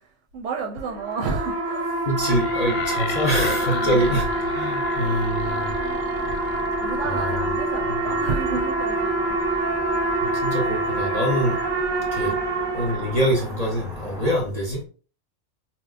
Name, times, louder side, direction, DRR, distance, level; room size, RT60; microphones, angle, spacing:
voice 1, 0.0-2.4 3.6-4.2 5.0-6.0 6.8-9.4 12.2-12.4, right 4 dB, 90° right, 0.9 m, -33 dB
sound 1, 0.8-13.5, right 2 dB, 50° right, 0.7 m, -26 dB
voice 2, 2.1-4.3 4.5-5.7 7.2-7.3 10.2-11.6 12.1-12.3 12.7-14.9, equal, 40° left, 0.6 m, -24 dB
sound 2, 2.2-7.5, left 6 dB, 90° left, 0.9 m, -36 dB
sound 3, 2.2-14.3, equal, 5° right, 0.3 m, -39 dB
4.3 x 2.0 x 2.4 m
omnidirectional pair, 1.2 m